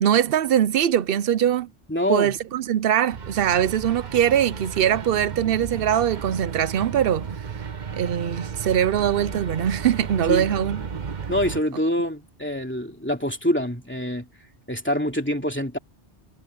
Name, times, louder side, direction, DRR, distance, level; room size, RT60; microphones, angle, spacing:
voice 1, 0.0-1.7 2.1-7.3 8.0-10.8, right 10 dB, 60° right, 0.8 m, -22 dB
voice 2, 1.9-2.4 10.3-10.5 11.3-14.3 14.7-15.8, left 1 dB, 10° left, 2.7 m, -25 dB
sound 1, 3.1-11.6, right 6 dB, 45° right, 1.1 m, -34 dB
omnidirectional pair, 1.1 m